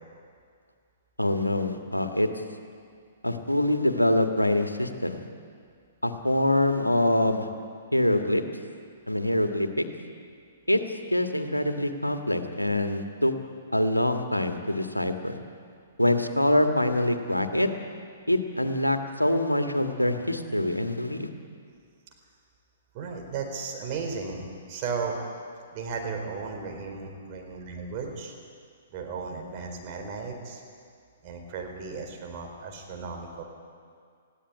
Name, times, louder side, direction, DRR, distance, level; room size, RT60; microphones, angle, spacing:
voice 1, 1.2-2.3 3.2-5.2 6.0-7.5 7.9-8.4 9.1-9.8 10.7-13.3 13.7-15.4 16.0-17.7 18.3-21.3, left 1 dB, 90° left, 6 dB, 1.7 m, -25 dB
voice 2, 22.9-25.2 25.7-28.3 28.9-30.6 31.2-33.4, right 5 dB, 35° right, 2 dB, 4.1 m, -35 dB
19.5 x 15.5 x 9.8 m, 2.2 s
figure-of-eight pair, 115°, 0 cm